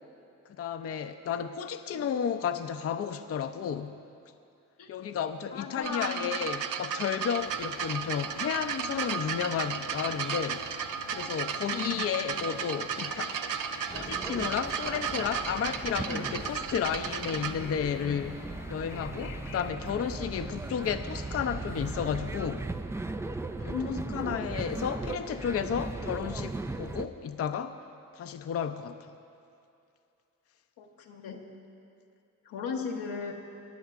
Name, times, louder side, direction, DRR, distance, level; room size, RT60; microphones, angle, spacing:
voice 1, 0.5-4.0 4.9-10.7 11.1-13.3 13.9-22.7 23.6-27.8 28.1-29.1, left 8 dB, 45° left, 8 dB, 0.5 m, -32 dB
voice 2, 5.5-6.3 11.7-12.2 23.6-24.5 30.8-31.5 32.4-33.3, left 5 dB, 90° left, 1 dB, 1.1 m, -36 dB
sound 1, 5.8-17.5 18.5-18.6, right 7 dB, 70° right, 0.6 m, -34 dB
sound 2, 7.4-19.7, left 5 dB, 70° left, 0.9 m, -49 dB
sound 3, 13.9-27.1, right 2 dB, 10° right, 0.3 m, -38 dB
23.0 x 10.5 x 2.5 m, 2.6 s
cardioid pair, 70°, 33 cm